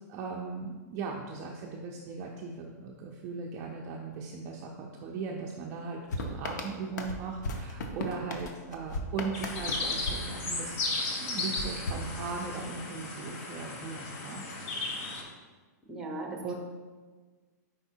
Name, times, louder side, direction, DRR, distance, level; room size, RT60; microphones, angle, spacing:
voice 1, 0.1-10.8 11.2-14.4 16.4-16.5, right 4 dB, 30° right, 0 dB, 0.4 m, -38 dB
sound 1, 6.1-11.0 11.5-12.8, left 1 dB, 80° left, 0.8 m, -37 dB
sound 2, 9.3-15.2, left 2 dB, 50° left, 1.0 m, -35 dB
voice 2, 15.9-16.5, right 2 dB, 5° right, 0 dB, 0.8 m, -38 dB
4.8 x 4.5 x 4.3 m, 1.4 s
supercardioid pair, 165°, 9 cm